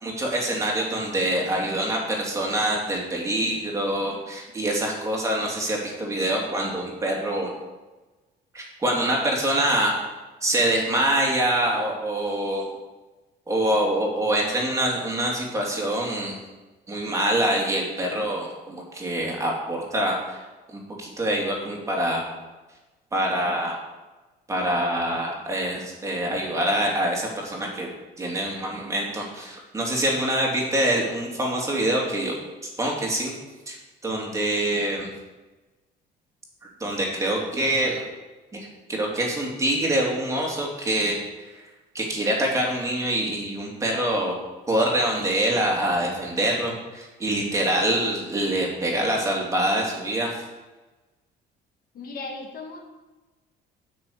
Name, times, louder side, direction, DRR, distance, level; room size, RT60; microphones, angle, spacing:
voice 1, 0.0-7.5 8.5-9.9 10.4-12.6 13.5-16.4 16.9-20.4 20.7-22.2 23.1-23.7 24.5-27.9 28.2-32.3 32.8-33.3 33.7-33.8 34.0-35.1 36.8-38.0 38.5-41.2 41.9-44.4 44.7-50.4, right 1 dB, 15° right, -2 dB, 2.8 m, -25 dB
voice 2, 51.9-52.8, left 3 dB, 55° left, 2 dB, 1.9 m, -36 dB
8.8 x 6.3 x 8.5 m, 1.2 s
cardioid pair, 150°, 18 cm